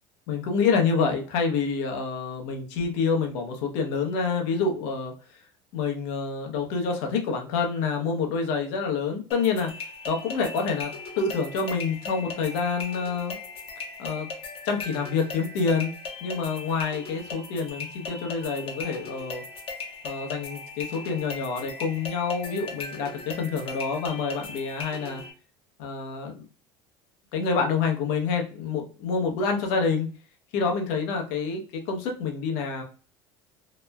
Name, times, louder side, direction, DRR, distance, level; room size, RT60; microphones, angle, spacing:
voice 1, 0.3-5.1 5.7-9.7 10.1-13.4 14.0-14.3 14.6-15.9 16.2-19.4 20.0-25.2 25.8-26.4 27.3-30.1 30.5-32.8, left 5 dB, 75° left, 3 dB, 0.8 m, -27 dB
sound 1, 9.3-25.3, left 4 dB, 45° left, 0.8 m, -38 dB
2.9 x 2.1 x 2.2 m, 0.37 s
supercardioid pair, 95°, 13 cm